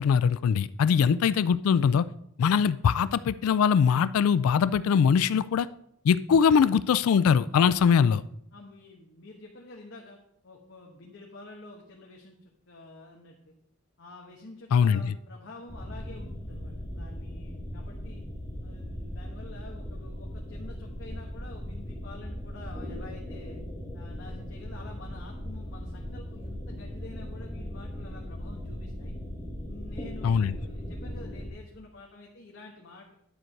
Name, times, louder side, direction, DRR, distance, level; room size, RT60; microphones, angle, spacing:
voice 1, 0.0-2.0 2.4-5.7 6.0-8.2 14.7-15.1 30.2-30.6, left 7 dB, 90° left, 16 dB, 0.3 m, -22 dB
voice 2, 8.5-10.2 10.4-13.5 14.0-18.2 18.6-23.6 23.9-29.1 29.7-33.1, left 2 dB, 60° left, -1 dB, 1.2 m, -48 dB
sound 1, 15.7-31.5, equal, 15° left, 1.4 m, -38 dB
10.0 x 4.6 x 6.5 m, 0.75 s
head